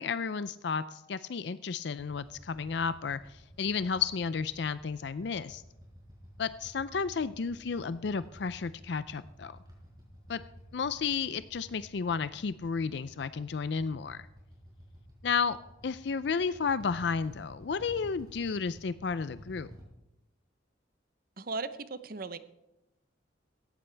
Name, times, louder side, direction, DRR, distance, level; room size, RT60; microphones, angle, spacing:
voice 1, 0.0-3.2 3.6-5.6 6.4-9.5 10.3-10.4 10.7-14.3 15.2-15.6 15.8-19.7, left 5 dB, 60° left, 14 dB, 0.4 m, -32 dB
Motorcycle / Idling, 2.0-19.8, equal, 20° right, 4.7 m, -53 dB
voice 2, 21.4-22.4, right 3 dB, 50° right, 12 dB, 0.8 m, -37 dB
17.5 x 14.0 x 3.4 m, 0.96 s
head